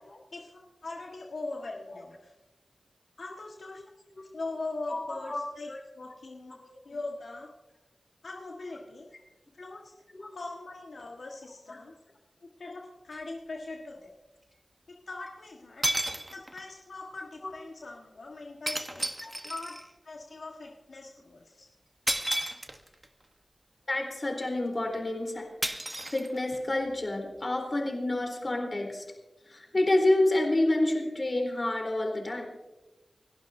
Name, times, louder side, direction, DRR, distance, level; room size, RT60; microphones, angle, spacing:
voice 1, 0.3-2.3 3.2-3.8 4.3-6.6 6.8-7.5 8.2-9.1 9.5-9.9 10.3-11.9 12.6-14.1 15.1-15.8 16.3-19.7 20.0-21.7, left 2 dB, 80° left, -1 dB, 1.5 m, -41 dB
voice 2, 4.9-5.4 5.7-5.8 6.5-6.6 10.1-10.3 17.4-17.5 19.2-19.3 23.9-25.5 26.1-29.0 29.5-32.5, left 1 dB, 45° left, 2 dB, 3.8 m, -28 dB
sound 1, 13.1-13.2 15.3-15.4 15.8-16.7 18.7-19.9 22.1-23.1 25.6-26.7, right 1 dB, 20° right, 1.1 m, -32 dB
29.0 x 11.5 x 2.7 m, 1.1 s
wide cardioid pair, 60°, 0 cm